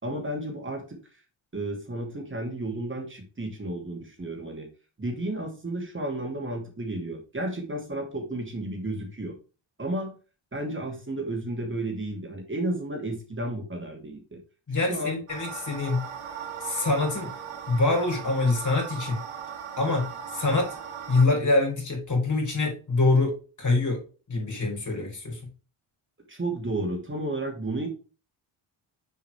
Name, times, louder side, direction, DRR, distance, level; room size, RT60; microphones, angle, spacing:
voice 1, 0.0-1.0 1.5-4.7 5.0-9.3 9.8-10.1 10.5-14.4 14.9-15.2 26.3-27.9, right 1 dB, 25° right, 2 dB, 2.5 m, -32 dB
voice 2, 14.7-16.1 16.6-17.3 17.7-19.2 19.8-20.7 21.1-24.0 24.3-25.4, left 3 dB, 35° left, 1 dB, 3.7 m, -25 dB
sound 1, 15.3-21.3, right 8 dB, 90° right, 1.8 m, -38 dB
6.9 x 4.7 x 3.2 m, 0.34 s
cardioid pair, 90°, 49 cm